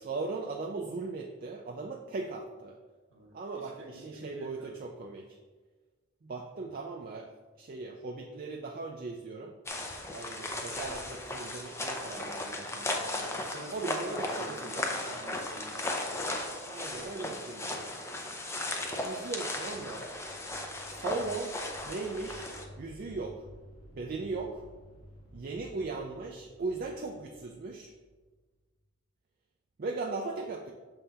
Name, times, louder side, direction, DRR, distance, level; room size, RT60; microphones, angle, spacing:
voice 1, 0.0-2.8 3.3-5.4 6.2-7.3 7.6-9.6 10.1-13.2 13.7-14.9 16.7-18.3 19.0-20.1 20.9-21.6 21.8-22.5 22.8-23.5 23.9-24.6 25.3-27.9 29.8-30.7, right 3 dB, 45° right, 1 dB, 0.4 m, -38 dB
voice 2, 3.5-4.8 13.1-16.0 17.2-17.3, right 1 dB, 65° right, -1 dB, 1.5 m, -47 dB
sound 1, 9.7-22.7, left 1 dB, 15° left, 0.5 m, -36 dB
sound 2, 19.4-28.6, equal, 75° left, 0.9 m, -54 dB
6.9 x 5.6 x 2.8 m, 1.3 s
head